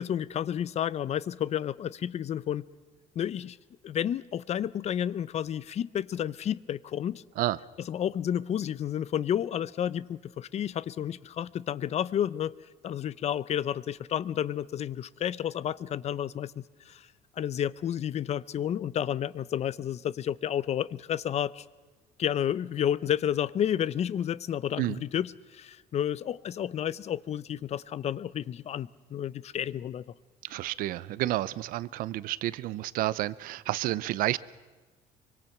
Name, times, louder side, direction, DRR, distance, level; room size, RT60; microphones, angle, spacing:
voice 1, 0.0-2.6 3.2-3.6 3.8-7.2 7.9-12.5 12.8-17.1 17.4-21.6 22.2-30.0, left 10 dB, 45° left, 0.7 m, -31 dB
voice 2, 30.4-34.4, right 15 dB, 75° right, 0.7 m, -30 dB
24.5 x 23.5 x 6.0 m
cardioid pair, 110°, 15 cm